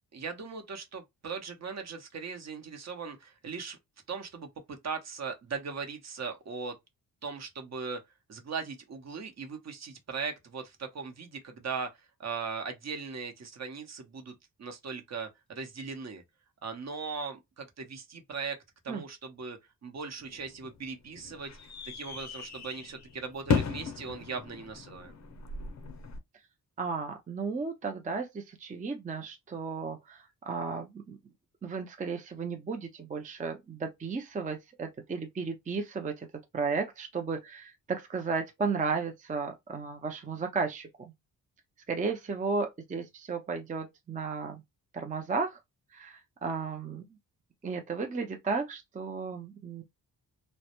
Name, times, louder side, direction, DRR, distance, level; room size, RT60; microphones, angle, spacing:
voice 1, 0.1-3.8 4.1-6.8 7.2-8.0 8.3-11.9 12.2-14.3 14.6-16.2 16.6-18.6 18.8-21.5 21.8-25.1, right 5 dB, 45° right, 0.8 m, -39 dB
sound 1, 20.2-26.2, left 4 dB, 50° left, 0.6 m, -36 dB
voice 2, 26.8-31.2 31.6-36.3 36.5-40.9 41.9-44.6 44.9-45.6 45.9-47.0 47.6-49.8, right 4 dB, 20° right, 0.4 m, -34 dB
2.1 x 2.0 x 2.9 m
cardioid pair, 80°, 36 cm